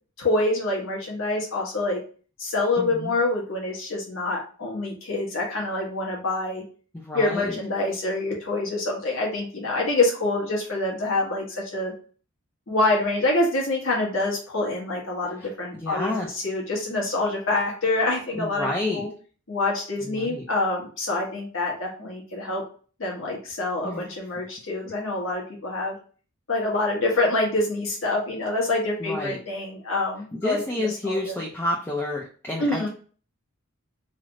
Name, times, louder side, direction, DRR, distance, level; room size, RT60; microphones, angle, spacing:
voice 1, 0.2-2.0 2.4-6.6 7.1-11.9 12.7-19.1 19.5-22.6 23.0-25.9 26.5-31.4 32.6-32.9, left 2 dB, 65° left, -2 dB, 1.2 m, -26 dB
voice 2, 2.8-3.1 6.9-7.6 15.4-15.5 15.7-16.4 18.3-19.1 20.0-20.4 23.8-24.0 29.0-29.4 30.3-32.9, left 1 dB, 10° left, -2 dB, 0.4 m, -29 dB
3.2 x 2.0 x 3.6 m, 0.40 s
head